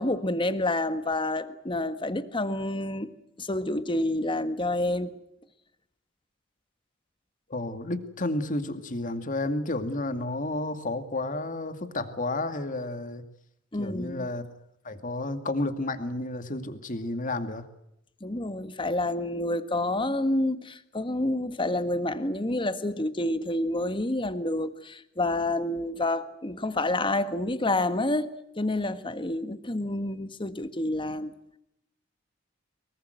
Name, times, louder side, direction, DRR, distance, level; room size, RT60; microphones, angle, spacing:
voice 1, 0.0-3.1 3.4-5.1 13.7-14.3 18.2-28.3 28.6-31.4, left 1 dB, 25° left, 11 dB, 1.6 m, -28 dB
voice 2, 7.5-13.2 13.8-14.5 14.8-17.7, left 2 dB, 40° left, 9 dB, 2.3 m, -31 dB
24.0 x 22.5 x 8.0 m, 0.79 s
head